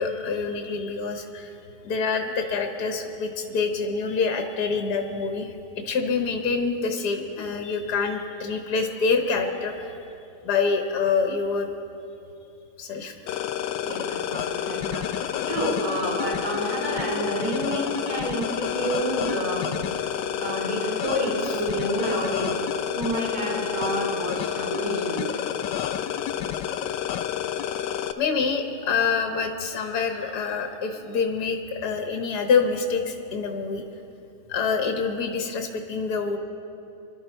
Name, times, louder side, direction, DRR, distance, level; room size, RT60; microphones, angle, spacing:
voice 1, 0.0-1.5 1.8-9.9 10.4-11.7 12.8-13.1 21.4-21.6 25.7-25.8 28.2-33.8 34.5-36.4, left 5 dB, 65° left, 4 dB, 1.6 m, -26 dB
sound 1, 13.3-28.1, left 10 dB, 80° left, 1.3 m, -29 dB
voice 2, 13.9-19.7 20.4-22.6 22.9-25.4, right 1 dB, 55° right, -3 dB, 3.8 m, -29 dB
24.0 x 12.0 x 4.5 m, 2.8 s
omnidirectional pair, 1.9 m